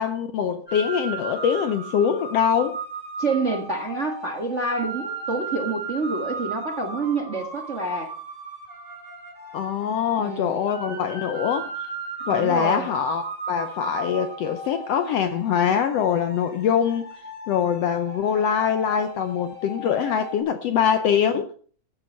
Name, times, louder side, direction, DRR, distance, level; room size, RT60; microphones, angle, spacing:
voice 1, 0.0-2.8 9.5-11.9 12.3-17.1 17.5-21.5, left 8 dB, 70° left, 1.6 m, -23 dB
sound 1, 0.7-20.4, right 3 dB, 5° left, 4.7 m, -36 dB
voice 2, 3.2-8.1 10.2-10.6 12.3-12.9, right 3 dB, 35° right, 1.3 m, -27 dB
13.5 x 8.9 x 5.4 m
omnidirectional pair, 3.6 m